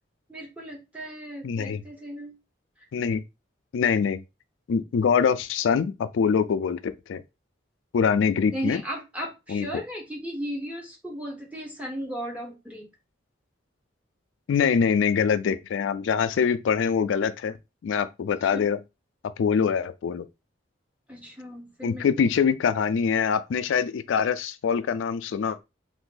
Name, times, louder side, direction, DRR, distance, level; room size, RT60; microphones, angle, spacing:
voice 1, 0.3-2.3 8.5-12.9 18.5-18.7 21.1-22.1, equal, 5° right, 0.8 m, -36 dB
voice 2, 1.4-1.8 2.9-3.2 3.7-4.2 4.7-7.2 7.9-8.8 9.5-9.7 14.5-17.6 17.8-18.8 19.2-20.2 21.8-25.6, left 6 dB, 75° left, 0.3 m, -24 dB
2.6 x 2.6 x 3.8 m
head